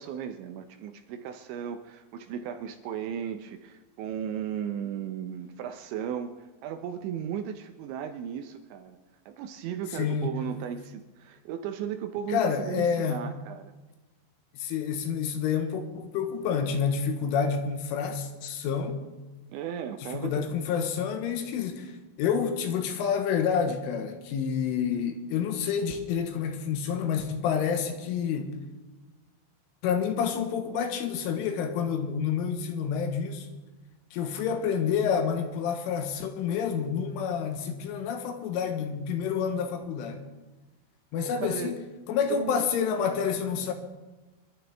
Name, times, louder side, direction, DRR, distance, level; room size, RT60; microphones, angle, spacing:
voice 1, 0.0-9.0 9.3-13.7 19.5-20.5 41.4-41.8 42.3-42.7, right 8 dB, 80° right, 7 dB, 2.8 m, -36 dB
voice 2, 10.0-10.4 12.3-13.2 14.6-19.0 20.0-21.9 22.2-28.6 29.8-33.5 34.1-40.2 41.1-41.8 42.1-43.7, left 7 dB, 80° left, 6 dB, 3.6 m, -28 dB
27.0 x 11.5 x 3.4 m, 1.2 s
omnidirectional pair, 5.7 m